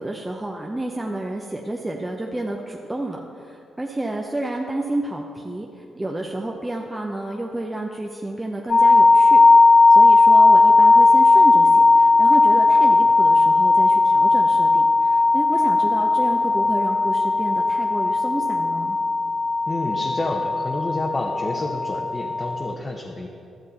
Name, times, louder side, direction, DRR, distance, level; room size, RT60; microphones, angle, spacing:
voice 1, 0.0-9.4 9.9-19.0, right 1 dB, 15° right, 0 dB, 0.7 m, -30 dB
sound 1, 8.7-22.7, left 3 dB, 45° left, 0.5 m, -16 dB
voice 2, 19.7-23.3, left 2 dB, 25° left, 0 dB, 0.9 m, -29 dB
12.0 x 7.5 x 4.2 m, 2.6 s
cardioid pair, 65°, 0 cm